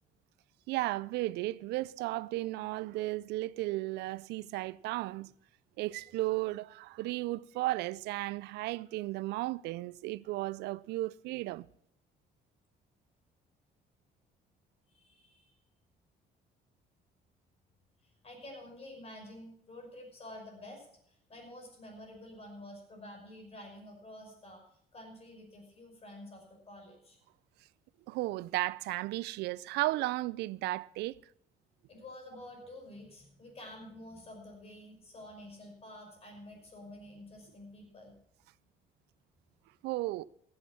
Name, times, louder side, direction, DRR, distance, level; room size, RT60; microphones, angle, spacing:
voice 1, 0.7-5.3 5.8-11.7 28.1-31.2 39.8-40.2, right 18 dB, 85° right, 0.4 m, -34 dB
voice 2, 14.9-15.6 18.0-24.6 24.9-27.2 31.9-38.1, left 1 dB, 35° left, 5.7 m, -49 dB
16.0 x 8.4 x 5.9 m
cardioid pair, 110°, 17 cm